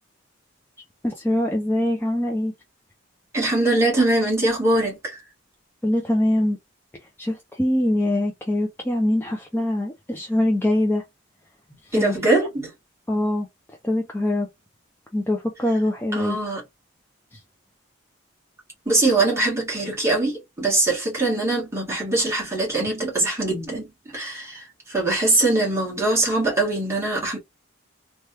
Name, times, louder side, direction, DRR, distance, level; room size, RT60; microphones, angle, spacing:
voice 1, 1.0-2.5 5.8-6.6 7.2-11.0 11.8-12.2 13.1-13.5 13.8-14.5 15.1-16.4 17.3-17.4, left 1 dB, 10° left, 0.4 m, -23 dB
voice 2, 3.3-5.2 11.9-12.7 16.1-16.6 18.8-27.4, right 2 dB, 15° right, 1.5 m, -22 dB
3.2 x 2.2 x 2.8 m
head